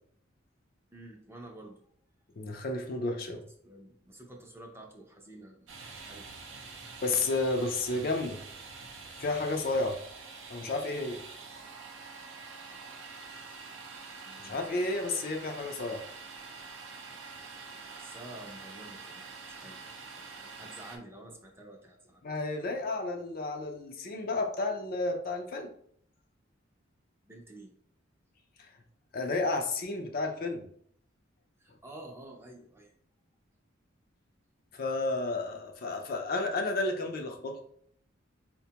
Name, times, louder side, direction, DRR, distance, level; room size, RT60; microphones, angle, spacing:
voice 1, 0.9-1.8 3.6-6.8 14.2-14.9 17.9-22.2 27.3-27.7 31.6-32.9, right 1 dB, 15° right, 1 dB, 0.5 m, -50 dB
voice 2, 2.4-3.4 7.0-8.4 9.2-10.0 10.5-11.2 14.4-16.0 22.2-25.7 29.1-30.7 34.7-37.6, left 2 dB, 50° left, 3 dB, 0.5 m, -31 dB
Domestic sounds home sounds, 5.7-21.0, right 4 dB, 70° right, 0.6 m, -46 dB
4.2 x 2.2 x 2.8 m, 0.64 s
head